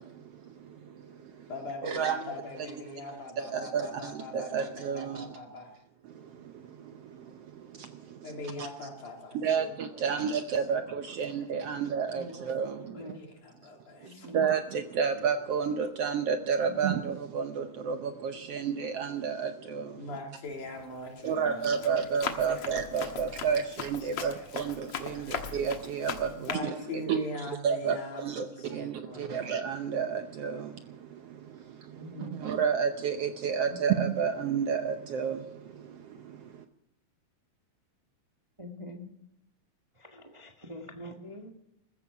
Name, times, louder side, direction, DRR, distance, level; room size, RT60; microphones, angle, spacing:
voice 1, 0.0-1.5 1.8-2.3 3.4-5.4 6.0-8.3 8.6-8.7 9.3-13.0 14.0-20.0 21.2-26.8 27.1-27.2 27.6-36.6, right 6 dB, 70° right, 7 dB, 1.5 m, -31 dB
voice 2, 1.5-5.7 8.2-10.3 10.7-10.8 11.0-11.2 11.6-11.9 12.9-14.3 19.9-22.1 22.5-22.9 24.0-24.8 25.0-25.4 26.3-29.5, left 2 dB, 75° left, 0 dB, 5.0 m, -42 dB
voice 3, 12.0-12.4 12.8-13.3 14.0-14.5 16.6-16.8 31.9-32.4 33.7-33.8 38.6-39.1 39.9-41.5, left 1 dB, 45° right, 2 dB, 0.4 m, -45 dB
Run, 20.5-20.8 21.3-26.6, left 7 dB, 55° left, 2.1 m, -38 dB
21.0 x 14.5 x 4.7 m, 0.80 s
omnidirectional pair, 3.5 m